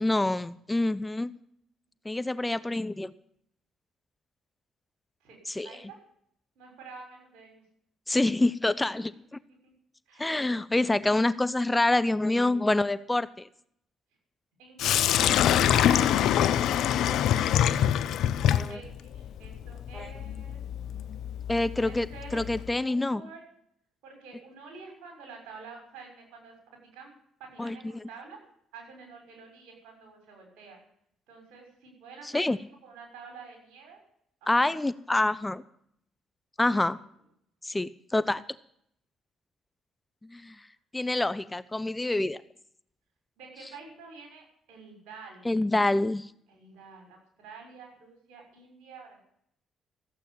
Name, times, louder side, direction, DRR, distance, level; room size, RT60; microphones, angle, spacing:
voice 1, 0.0-1.3 2.0-3.1 5.6-5.7 8.1-9.1 10.2-13.5 18.4-18.8 19.9-20.0 21.5-22.1 22.3-23.2 27.6-27.8 32.3-32.6 34.5-35.6 36.6-37.0 37.6-38.4 40.3-40.5 40.9-42.4 45.4-46.3, left 2 dB, 15° left, 15 dB, 0.7 m, -26 dB
voice 2, 5.6-6.0 6.5-7.6 8.9-9.0 10.1-10.3 14.6-17.9 18.7-20.6 21.8-22.4 22.7-23.4 24.0-26.6 26.9-27.1 27.4-28.4 28.7-30.8 31.3-34.0 34.4-34.8 36.7-37.0 43.4-45.6 46.5-49.2, right 4 dB, 75° right, 2 dB, 6.2 m, -48 dB
Sink (filling or washing), 14.8-22.7, left 10 dB, 70° left, 0.6 m, -25 dB
14.5 x 8.2 x 9.0 m, 0.70 s
hypercardioid pair, 55°, 0 cm